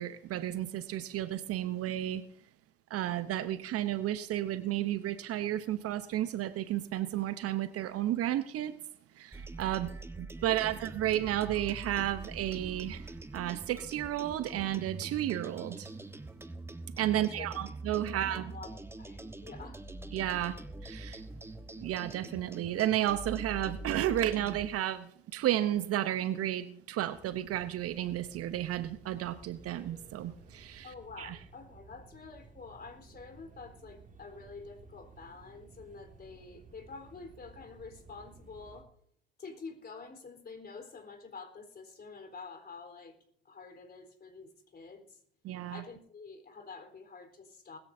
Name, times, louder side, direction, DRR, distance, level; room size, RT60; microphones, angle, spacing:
voice 1, 0.0-2.2 2.9-8.8 9.2-9.9 10.2-15.9 17.0-18.5 20.1-20.6 20.8-21.2 21.8-30.9 31.2-31.4 45.4-45.8, right 12 dB, 45° right, 14 dB, 0.9 m, -32 dB
sound 1, 9.3-24.7, right 2 dB, 10° right, 1.3 m, -44 dB
voice 2, 10.4-10.8 17.1-17.6 18.1-19.8 30.8-38.9 39.4-43.2 43.4-45.2 45.7-47.8, left 4 dB, 30° left, 6 dB, 4.0 m, -48 dB
sound 2, 27.1-38.8, right 3 dB, 25° right, 2.3 m, -56 dB
20.5 x 14.0 x 2.7 m, 0.65 s
hypercardioid pair, 70°, 32 cm